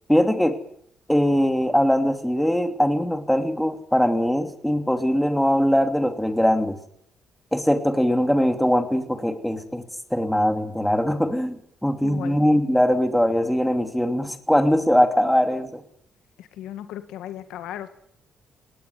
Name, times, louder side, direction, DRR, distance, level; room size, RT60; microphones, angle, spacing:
voice 1, 0.1-0.6 1.1-6.8 7.5-9.8 10.1-11.6 11.8-15.8, equal, 5° left, 8 dB, 2.7 m, -21 dB
voice 2, 12.0-12.4 16.4-17.9, left 11 dB, 90° left, 10 dB, 1.9 m, -36 dB
19.0 x 18.5 x 9.4 m, 0.65 s
cardioid pair, 90°, 0 cm